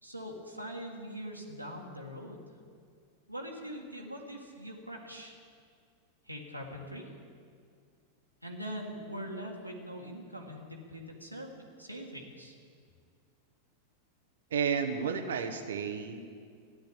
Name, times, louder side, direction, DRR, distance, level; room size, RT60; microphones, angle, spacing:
voice 1, 0.0-2.5 3.3-5.4 6.3-7.1 8.4-12.5, equal, 90° right, -2 dB, 1.8 m, -42 dB
voice 2, 14.5-16.2, right 6 dB, 65° right, 6 dB, 1.1 m, -32 dB
14.5 x 9.9 x 8.5 m, 2.2 s
figure-of-eight pair, 90°, 0 cm